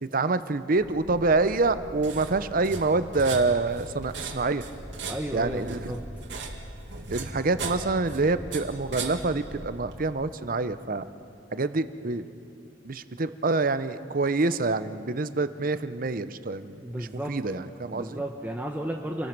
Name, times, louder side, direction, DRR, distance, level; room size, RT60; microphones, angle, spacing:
voice 1, 0.0-4.6 5.3-5.9 7.1-11.0 11.5-12.3 12.8-18.2, right 3 dB, 50° right, 12 dB, 0.7 m, -26 dB
sound 1, 0.8-10.1, right 3 dB, 75° right, 2.4 m, -38 dB
voice 2, 5.1-6.0 16.8-17.4 17.9-19.3, right 1 dB, 10° right, 1 dB, 0.9 m, -33 dB
28.0 x 20.0 x 6.0 m, 2.6 s
head